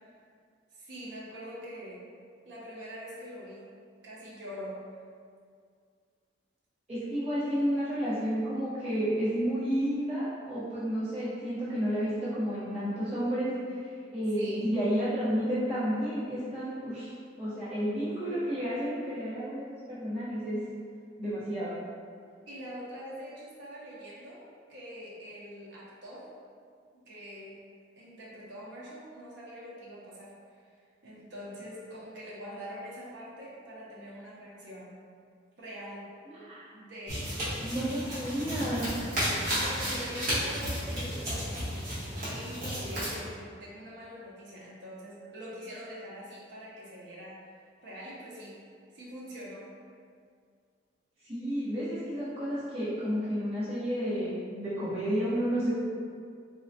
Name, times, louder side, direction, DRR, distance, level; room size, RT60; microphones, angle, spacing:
voice 1, 0.7-2.0 2.5-3.7 4.0-4.8 14.3-14.7 22.5-26.2 27.0-27.6 28.0-30.6 31.0-34.9 35.6-36.1 36.7-37.3 37.7-37.9 39.1-41.8 42.2-47.5 47.8-48.6 48.9-49.7, equal, 70° right, -7 dB, 0.6 m, -44 dB
voice 2, 6.9-17.1 17.4-20.6 21.2-21.7 36.3-36.7 37.6-38.9 51.2-55.7, equal, 35° right, -13 dB, 0.8 m, -31 dB
sound 1, 37.1-43.2, equal, 55° right, 1.1 m, -33 dB
3.7 x 2.1 x 2.6 m, 2.2 s
head